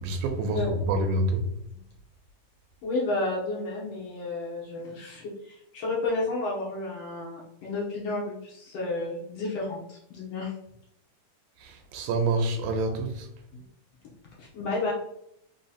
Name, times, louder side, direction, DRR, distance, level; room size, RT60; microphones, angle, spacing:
voice 1, 0.0-1.5 11.6-13.3, right 2 dB, 85° right, 2.1 m, -27 dB
voice 2, 2.8-10.5 13.5-13.6 14.4-14.9, left 2 dB, 65° left, 1.7 m, -31 dB
4.6 x 3.8 x 2.8 m
omnidirectional pair, 3.6 m